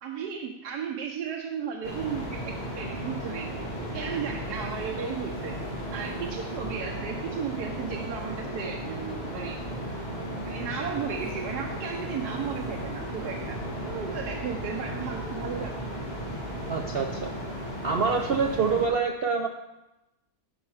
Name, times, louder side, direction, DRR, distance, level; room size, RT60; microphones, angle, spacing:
voice 1, 0.0-9.6 10.4-13.6 13.9-15.8, right 7 dB, 85° right, 1 dB, 1.3 m, -35 dB
sound 1, 1.8-18.9, equal, 30° left, 2.0 m, -35 dB
voice 2, 16.7-17.3 17.8-19.5, right 5 dB, 70° right, 4 dB, 0.5 m, -26 dB
11.0 x 5.5 x 4.8 m, 0.97 s
omnidirectional pair, 1.7 m